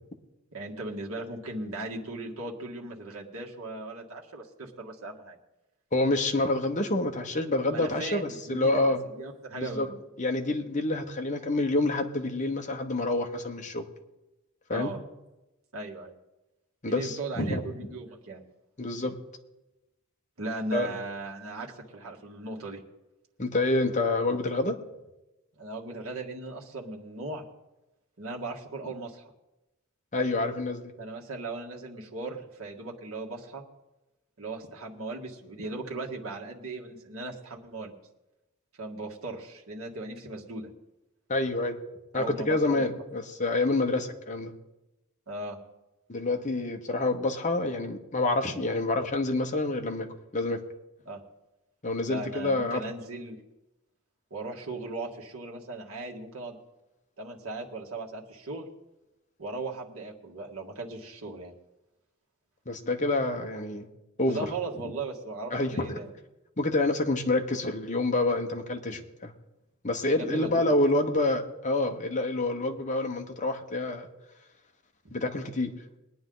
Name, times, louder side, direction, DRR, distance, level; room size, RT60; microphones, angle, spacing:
voice 1, 0.5-5.4 7.7-8.8 9.1-10.0 14.7-15.0 15.7-16.1 16.8-18.4 20.4-22.8 25.6-27.4 28.2-29.2 31.0-33.6 34.4-37.9 38.8-40.7 42.1-42.9 45.3-45.6 51.1-51.2 52.0-53.4 54.3-56.6 57.2-58.7 59.4-61.5 64.3-66.1 70.2-70.7, right 2 dB, 70° right, -1 dB, 1.9 m, -37 dB
voice 2, 5.9-9.1 9.6-9.9 10.2-13.8 14.7-14.9 16.8-17.6 18.8-19.2 20.7-20.9 23.4-24.8 30.1-30.9 41.3-41.8 42.1-44.5 46.1-50.1 50.3-50.6 51.8-52.8 62.7-63.9 64.2-64.4 65.5-66.0 66.6-69.3 69.8-74.1 75.1-75.7, left 2 dB, 35° left, 4 dB, 1.2 m, -27 dB
22.0 x 9.5 x 3.9 m, 0.99 s
head